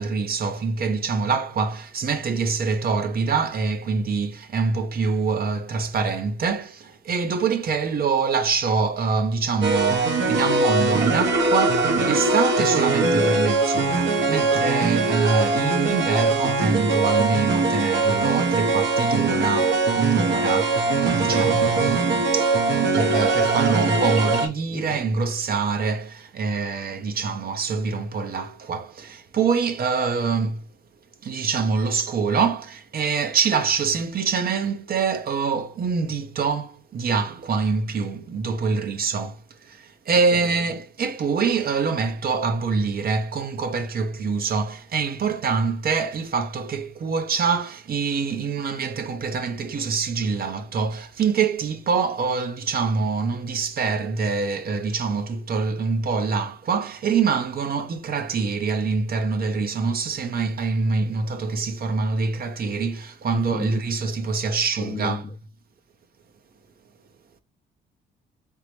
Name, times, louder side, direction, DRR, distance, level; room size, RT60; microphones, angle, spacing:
voice 1, 0.0-30.7 31.2-65.2, right 5 dB, 50° right, 0.8 m, -25 dB
sound 1, 9.6-24.5, right 3 dB, 70° right, 1.2 m, -21 dB
voice 2, 63.3-63.7 64.8-65.2, left 6 dB, 30° left, 0.5 m, -33 dB
4.1 x 3.6 x 3.2 m
cardioid pair, 90°, 20 cm